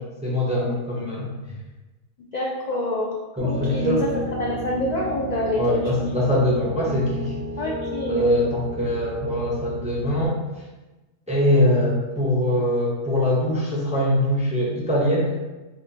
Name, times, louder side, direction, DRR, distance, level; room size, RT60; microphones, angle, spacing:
voice 1, 0.2-1.3 3.4-4.1 5.5-7.3 8.1-10.4 11.3-15.4, left 1 dB, 10° right, -5 dB, 0.5 m, -22 dB
voice 2, 2.3-3.1 3.4-4.1 4.4-6.1 7.6-8.3, left 1 dB, 55° left, -4 dB, 0.5 m, -26 dB
Piano, 3.4-10.3, equal, 35° left, 0.9 m, -33 dB
5.0 x 2.3 x 2.7 m, 1.1 s
omnidirectional pair, 1.2 m